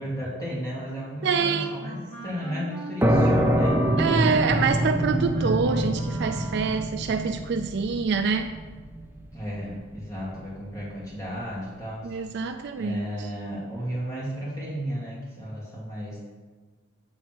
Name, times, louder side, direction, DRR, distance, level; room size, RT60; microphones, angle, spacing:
voice 1, 0.0-3.9 9.3-12.2 12.8-16.2, equal, 15° left, -6 dB, 2.4 m, -34 dB
Wind instrument woodwind instrument, 1.2-7.0, right 1 dB, 40° left, 2.3 m, -39 dB
voice 2, 1.2-1.8 4.0-8.5 12.0-13.1, right 5 dB, 55° right, 7 dB, 0.3 m, -26 dB
sound 1, 3.0-10.4, equal, 10° right, 0.6 m, -25 dB
7.8 x 4.0 x 6.0 m, 1.4 s
head